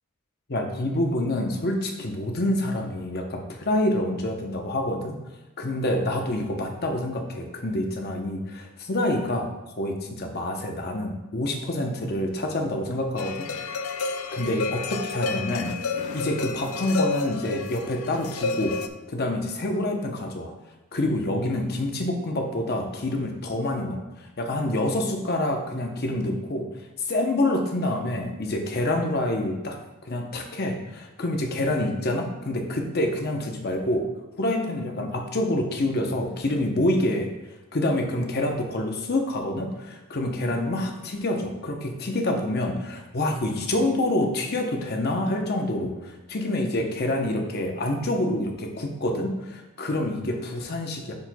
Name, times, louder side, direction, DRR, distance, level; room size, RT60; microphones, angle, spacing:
voice 1, 0.5-5.2 5.6-9.5 9.8-13.5 14.3-15.7 16.1-18.8 19.1-20.5 20.9-24.0 24.4-26.7 27.0-29.8 30.0-34.1 34.4-37.3 37.7-51.1, left 1 dB, 45° left, 3 dB, 0.8 m, -27 dB
sound 1, 13.2-18.9, left 4 dB, 75° left, 0.4 m, -30 dB
10.5 x 4.3 x 2.3 m, 1.0 s
head